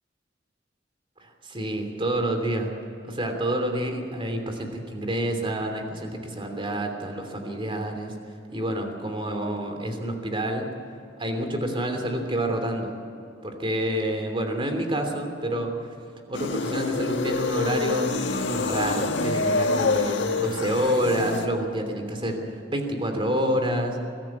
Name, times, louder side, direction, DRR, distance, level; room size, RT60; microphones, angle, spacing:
voice 1, 1.2-2.7 3.0-8.1 8.5-10.7 11.2-12.9 13.4-15.9 16.3-18.1 18.5-24.0, right 1 dB, 30° right, 4 dB, 3.0 m, -28 dB
sound 1, 16.3-21.5, left 3 dB, 70° left, 1.6 m, -26 dB
22.0 x 13.5 x 9.5 m, 2.5 s
head